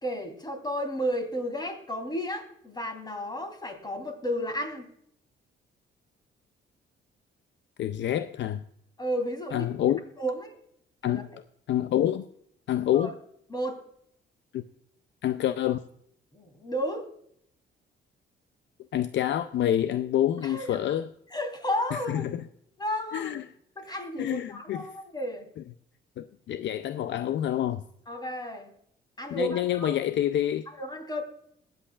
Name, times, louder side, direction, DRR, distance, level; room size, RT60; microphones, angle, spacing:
voice 1, 0.0-4.9 9.0-9.7 10.2-10.5 11.0-11.2 12.9-13.1 13.5-13.8 16.3-17.1 20.4-20.8 21.3-22.3 22.8-23.3 23.7-25.5 28.1-28.7 29.2-30.0 30.7-31.2, equal, 20° left, 3.3 m, -32 dB
voice 2, 7.8-8.6 9.5-10.0 11.0-11.3 11.7-12.2 12.7-13.1 14.5-14.6 15.2-15.8 18.9-21.1 21.9-22.4 23.1-23.4 24.2-24.9 26.2-27.8 29.3-30.7, left 11 dB, 65° left, 0.5 m, -27 dB
21.5 x 7.9 x 2.4 m
cardioid pair, 90°, 20 cm